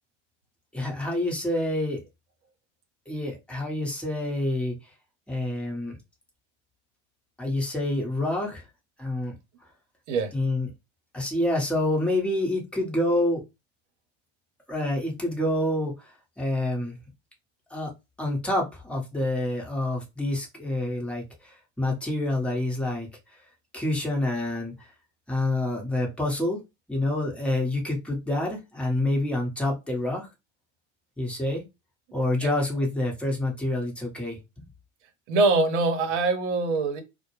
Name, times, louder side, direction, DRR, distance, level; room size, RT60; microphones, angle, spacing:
voice 1, 0.7-2.0 3.1-4.8 5.3-5.9 7.4-8.6 9.0-9.3 10.3-10.7 11.1-13.4 14.7-17.0 17.7-17.9 18.2-23.4 23.7-24.7 25.3-26.6 26.9-30.3 31.2-31.6 32.1-34.7, left 1 dB, 5° left, 0.9 m, -27 dB
voice 2, 35.3-37.0, right 3 dB, 70° right, 0.9 m, -23 dB
2.2 x 2.1 x 3.0 m
hypercardioid pair, 95°, 36 cm